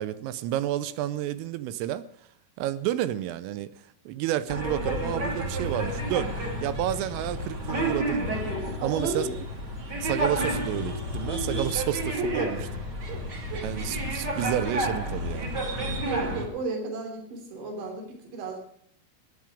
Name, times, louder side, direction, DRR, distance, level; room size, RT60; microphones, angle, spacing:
voice 1, 0.0-2.1 2.6-3.7 4.1-6.3 6.6-9.3 10.0-12.6 13.6-15.6, right 12 dB, 85° right, 15 dB, 3.3 m, -30 dB
sound 1, 4.5-16.5, equal, 40° right, 1.5 m, -31 dB
voice 2, 8.8-9.4 11.4-11.6 12.2-12.5 13.1-13.2 13.5-14.0 16.0-18.6, right 3 dB, 60° right, 4 dB, 5.2 m, -33 dB
23.0 x 9.4 x 5.0 m, 0.63 s
omnidirectional pair, 5.8 m